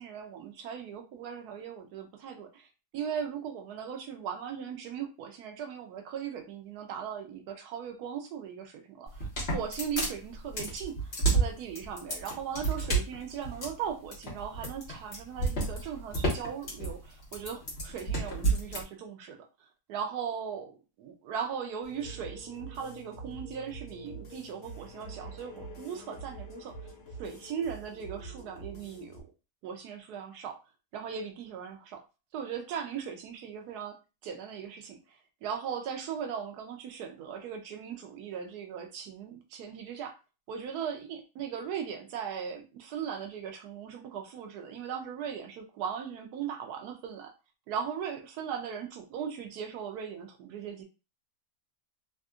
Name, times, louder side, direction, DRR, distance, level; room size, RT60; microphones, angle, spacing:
voice 1, 0.0-19.4 19.9-26.7 27.2-29.2 29.6-30.6 30.9-32.0 32.3-34.0 34.2-40.1 40.5-47.3 47.7-50.8, right 7 dB, 75° right, 4 dB, 1.0 m, -38 dB
sound 1, 9.1-18.8, right 3 dB, 40° left, 1.3 m, -30 dB
sound 2, 21.8-29.2, right 2 dB, 60° left, 1.3 m, -45 dB
3.4 x 2.5 x 2.3 m, 0.30 s
omnidirectional pair, 1.8 m